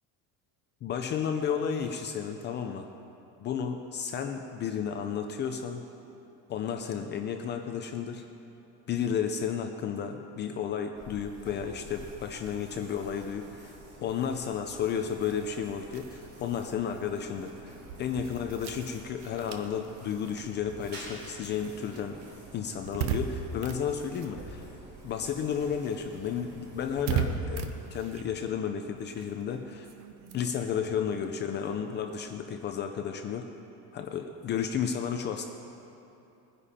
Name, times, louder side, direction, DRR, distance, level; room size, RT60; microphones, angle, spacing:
voice 1, 0.8-2.9 3.4-5.8 6.5-8.2 8.9-13.8 14.0-17.7 18.0-22.2 22.5-24.7 25.0-29.9 30.3-33.5 33.9-35.5, left 7 dB, 30° left, 5 dB, 0.5 m, -32 dB
sound 1, 10.9-28.3, right 1 dB, 30° right, 3.1 m, -49 dB
sound 2, 15.1-25.0 25.3-32.3, right 7 dB, 65° right, 1.0 m, -39 dB
20.0 x 10.0 x 4.2 m, 2.8 s
cardioid pair, 175°, 36 cm